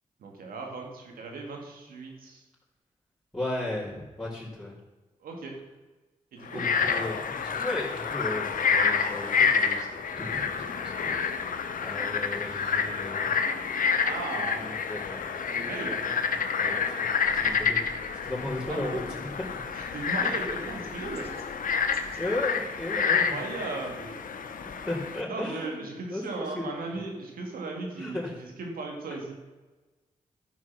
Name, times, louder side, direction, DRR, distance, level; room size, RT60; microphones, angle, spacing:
voice 1, 0.2-2.4 5.2-5.5 6.3-6.6 14.0-14.8 15.5-16.0 18.7-19.0 19.8-21.3 22.9-24.2 25.3-29.3, right 3 dB, 90° right, 1 dB, 2.0 m, -37 dB
voice 2, 3.3-4.7 6.4-9.9 10.2-11.1 11.8-13.3 14.3-15.7 16.6-17.8 18.2-19.6 22.2-23.4 24.8-25.8 26.1-27.0 27.9-28.4, left 1 dB, 10° left, -11 dB, 3.5 m, -35 dB
Frog, 6.5-25.2, left 6 dB, 70° left, 0.9 m, -28 dB
sound 1, 17.2-22.3, left 3 dB, 40° left, 1.9 m, -49 dB
12.5 x 4.9 x 6.0 m, 1.2 s
cardioid pair, 55°, 14 cm